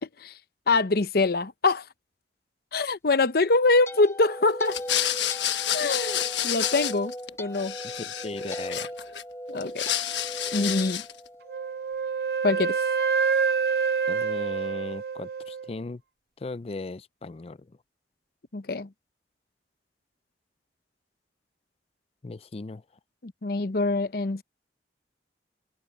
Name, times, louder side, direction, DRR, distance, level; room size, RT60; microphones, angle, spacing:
voice 1, 0.0-0.3 0.7-1.9 2.7-4.8 5.7-7.1 7.4-7.7 9.5-9.9 10.5-11.0 12.4-12.8 18.5-18.9 23.2-24.4, left 3 dB, 60° left, 0.8 m, -24 dB
sound 1, 3.3-11.7, equal, 15° left, 1.1 m, -38 dB
sound 2, 4.7-7.3 7.5-9.2 9.6-11.2, left 11 dB, 85° left, 1.2 m, -29 dB
voice 2, 7.9-8.9 14.1-16.0 16.4-17.7 22.2-22.8, left 3 dB, 35° left, 0.4 m, -37 dB
Wind instrument woodwind instrument, 11.5-15.7, right 5 dB, 60° right, 0.6 m, -27 dB
head